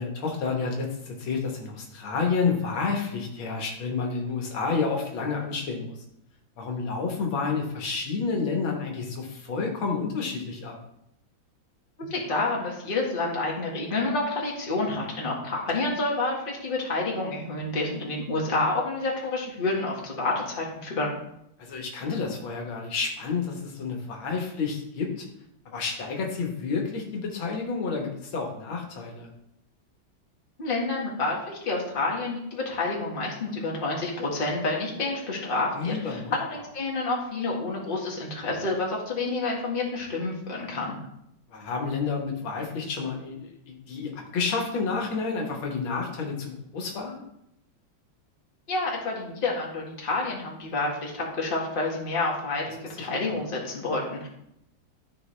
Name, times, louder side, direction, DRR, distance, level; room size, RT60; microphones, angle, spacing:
voice 1, 0.0-5.9 6.6-10.7 21.6-25.2 25.7-29.3 35.7-36.3 41.5-47.2 53.0-53.1, left 4 dB, 85° left, 1 dB, 2.1 m, -30 dB
voice 2, 12.1-21.1 30.6-41.0 48.7-54.3, left 2 dB, 30° left, -3 dB, 1.7 m, -29 dB
13.0 x 4.7 x 3.3 m, 0.79 s
omnidirectional pair, 2.2 m